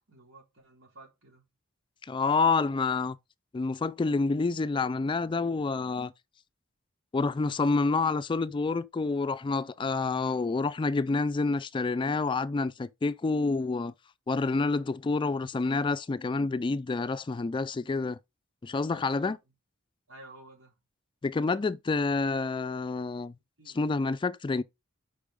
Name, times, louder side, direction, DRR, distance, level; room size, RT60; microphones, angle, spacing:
voice 1, 0.1-1.4 9.8-10.0 18.9-19.4 20.1-20.7 23.6-24.0, right 2 dB, 80° right, 3.5 m, -53 dB
voice 2, 2.1-3.2 3.5-6.1 7.1-13.9 14.3-18.2 18.6-19.4 21.2-23.3 23.7-24.6, left 3 dB, 25° left, 0.3 m, -28 dB
5.3 x 5.2 x 4.9 m
head